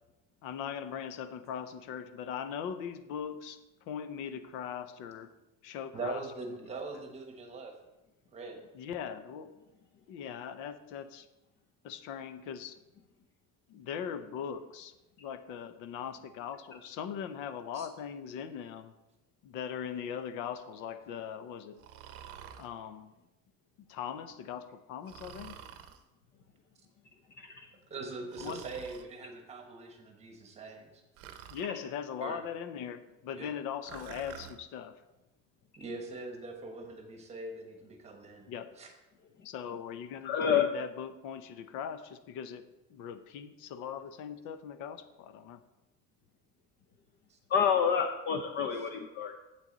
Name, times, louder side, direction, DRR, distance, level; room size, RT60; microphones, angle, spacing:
voice 1, 0.4-5.3 5.6-6.2 8.7-9.5 10.1-11.3 11.8-12.8 13.7-14.9 15.2-18.9 19.4-21.8 22.6-23.1 23.9-25.6 28.1-28.6 31.5-35.0 38.5-38.7 39.4-42.6 42.9-45.6, left 8 dB, 70° left, 10 dB, 0.8 m, -40 dB
voice 2, 5.9-7.7 8.3-8.6 17.7-17.9 27.5-27.6 27.9-30.9 32.2-32.4 33.3-33.5 35.8-38.5 38.8-38.9 47.3-47.4, right 3 dB, 20° right, 3 dB, 1.2 m, -42 dB
Breathing, 21.8-22.7 25.1-26.0 28.3-29.1 31.2-31.7 33.8-34.6, right 9 dB, 45° right, 0.7 m, -48 dB
voice 3, 27.4-27.7 31.6-31.7 40.2-40.7 47.5-49.4, left 7 dB, 35° left, 6 dB, 0.5 m, -28 dB
9.2 x 8.2 x 4.0 m, 0.98 s
cardioid pair, 180°, 31 cm